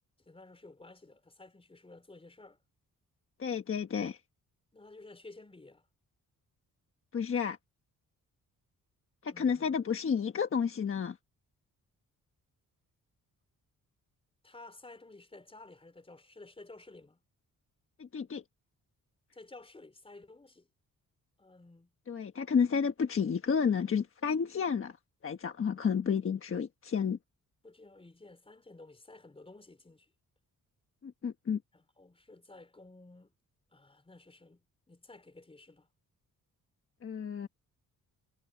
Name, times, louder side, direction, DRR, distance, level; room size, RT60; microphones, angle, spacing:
voice 1, 0.2-2.6 4.7-5.9 9.2-9.8 14.4-17.2 19.3-20.7 21.4-21.9 27.6-30.1 31.7-33.3 33.7-35.9, left 2 dB, 15° left, 4.3 m, -53 dB
voice 2, 3.4-4.2 7.1-7.6 9.2-11.2 18.0-18.4 22.1-25.0 25.2-27.2 31.0-31.6 37.0-37.5, left 6 dB, 40° left, 1.3 m, -31 dB
wide cardioid pair, 140°, 34 cm